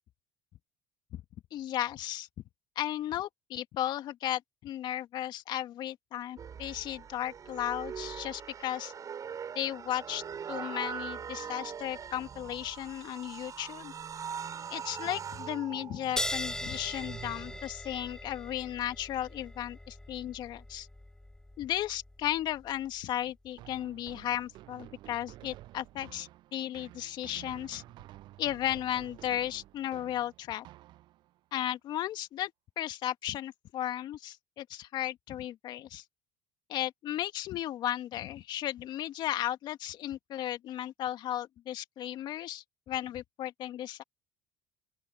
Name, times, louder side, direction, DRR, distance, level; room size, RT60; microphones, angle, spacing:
voice 1, 1.5-2.3 2.8-8.9 9.6-10.2 10.5-13.9 14.7-20.9 21.6-27.8 28.4-30.7 31.5-32.5 32.8-36.0 36.7-44.0, left 12 dB, 60° left, 2.1 m, -35 dB
sound 1, 6.4-17.6, right 7 dB, 45° right, 6.3 m, -42 dB
sound 2, 16.2-23.1, left 1 dB, 10° left, 0.9 m, -40 dB
sound 3, 23.6-31.4, right 16 dB, 65° right, 7.5 m, -51 dB
open air
hypercardioid pair, 70°, 8 cm